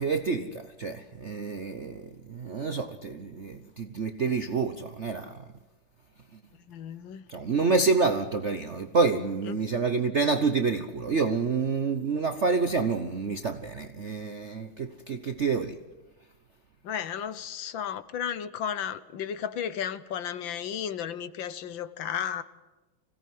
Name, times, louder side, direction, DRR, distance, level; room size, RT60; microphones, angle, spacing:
voice 1, 0.0-5.5 7.3-15.8, right 4 dB, 45° right, 0.9 m, -28 dB
voice 2, 6.7-7.3 9.5-9.6 16.8-22.4, left 8 dB, 70° left, 1.7 m, -34 dB
25.0 x 17.5 x 9.5 m
omnidirectional pair, 2.3 m